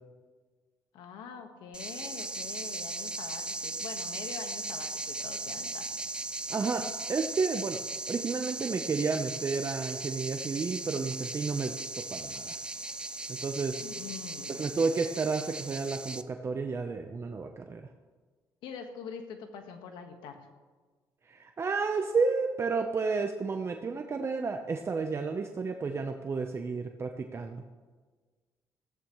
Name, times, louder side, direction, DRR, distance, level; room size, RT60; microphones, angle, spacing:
voice 1, 0.9-6.0 13.8-14.6 18.6-20.5, left 6 dB, 90° left, 5 dB, 1.5 m, -44 dB
forest cicada loop, 1.7-16.2, right 2 dB, 10° right, 0.5 m, -38 dB
voice 2, 6.5-7.8 8.1-12.6 13.4-13.8 14.5-17.9 21.3-27.6, right 4 dB, 35° right, 4 dB, 0.9 m, -31 dB
16.0 x 14.0 x 3.2 m, 1.4 s
cardioid pair, 95°, 8 cm